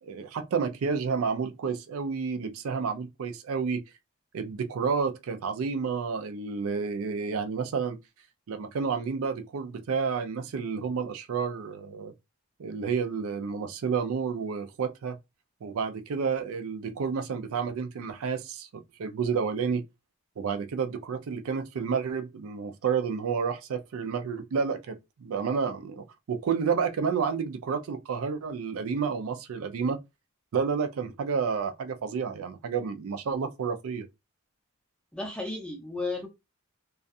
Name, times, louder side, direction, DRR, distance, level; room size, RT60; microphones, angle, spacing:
voice 1, 0.0-3.8 4.3-8.0 8.5-12.1 12.6-15.2 15.6-19.8 20.4-30.0 30.5-34.1, right 5 dB, 75° right, 0.4 m, -30 dB
voice 2, 35.1-36.3, left 2 dB, 5° left, 0.5 m, -33 dB
2.4 x 2.3 x 2.6 m
head